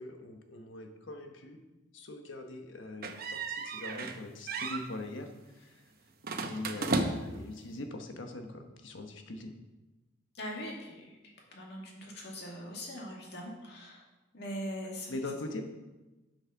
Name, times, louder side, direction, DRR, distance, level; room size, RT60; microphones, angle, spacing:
voice 1, 0.0-1.6 1.9-5.8 6.4-9.5 15.1-15.6, left 2 dB, 85° left, 5 dB, 1.2 m, -42 dB
sound 1, 3.0-4.2 4.5-4.9 6.2-7.4, right 3 dB, 55° right, 0.8 m, -34 dB
voice 2, 10.3-11.1 11.5-14.0 14.3-15.1, equal, 60° left, -2 dB, 2.3 m, -41 dB
8.1 x 6.4 x 5.9 m, 1.1 s
head